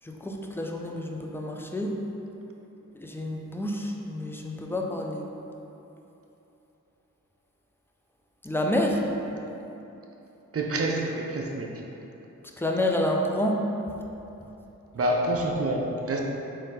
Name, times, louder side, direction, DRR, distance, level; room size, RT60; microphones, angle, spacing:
voice 1, 0.2-2.0 2.9-5.2 8.4-9.0 12.6-13.6, left 1 dB, 5° left, 1 dB, 0.4 m, -28 dB
voice 2, 10.5-11.8 14.9-16.2, right 1 dB, 45° right, 1 dB, 0.6 m, -27 dB
3.9 x 2.7 x 3.8 m, 3.0 s
cardioid pair, 40°, 33 cm